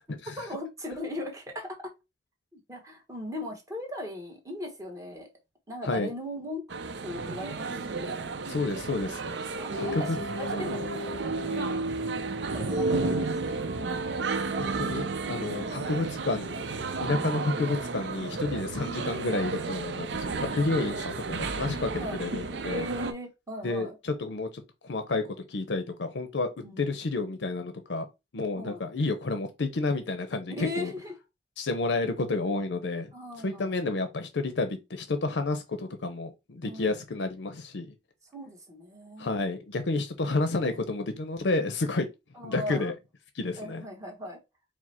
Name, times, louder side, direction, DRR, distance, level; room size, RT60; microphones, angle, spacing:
voice 1, 0.4-1.8 2.5-5.3 5.7-6.6 7.0-8.2 9.5-10.0 10.3-11.2 12.5-13.5 15.5-15.8 22.0-22.2 22.7-23.9 26.6-26.9 28.5-28.8 30.6-31.1 33.1-33.7 36.6-36.9 38.3-39.3 42.3-42.9 43.6-44.4, left 1 dB, 20° right, 1.1 m, -38 dB
sound 1, 6.7-23.1, right 3 dB, 85° right, 0.5 m, -32 dB
voice 2, 8.5-9.2 9.8-10.2 10.5-10.7 11.5-11.9 14.6-16.6 17.0-22.9 23.6-24.5 24.8-26.5 26.8-28.1 28.3-30.9 31.6-33.1 33.4-37.9 39.2-42.1 42.4-42.9 43.4-43.8, left 3 dB, 90° left, 0.6 m, -30 dB
4.8 x 2.1 x 4.2 m
head